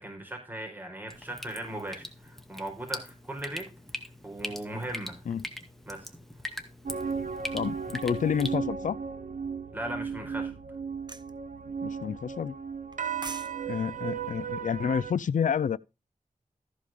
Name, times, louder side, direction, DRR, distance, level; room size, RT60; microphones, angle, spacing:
voice 1, 0.0-3.6 4.2-5.2 5.9-6.1 9.7-10.5, right 1 dB, 15° right, 4.5 m, -38 dB
Drip, 1.1-8.6, left 1 dB, ahead, 2.0 m, -42 dB
sound 1, 6.8-15.1, right 6 dB, 70° right, 1.0 m, -35 dB
voice 2, 7.5-9.0 11.8-12.5 13.7-15.8, left 7 dB, 70° left, 0.5 m, -29 dB
sound 2, 11.1-11.3 12.9-13.5 13.8-14.0, right 3 dB, 30° right, 1.0 m, -40 dB
14.0 x 5.1 x 5.0 m
cardioid pair, 65°, 14 cm